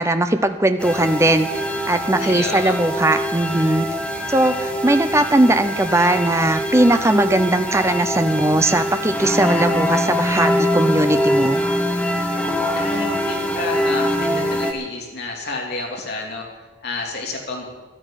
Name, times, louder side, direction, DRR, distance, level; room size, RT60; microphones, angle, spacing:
voice 1, 0.0-1.5 1.9-3.9 4.3-11.6, right 1 dB, 15° right, 9 dB, 0.6 m, -19 dB
sound 1, 0.8-14.7, equal, 5° left, 1.1 m, -23 dB
voice 2, 2.2-2.7 12.8-17.7, left 2 dB, 50° left, -1 dB, 3.2 m, -29 dB
11.5 x 10.5 x 9.1 m, 1.2 s
head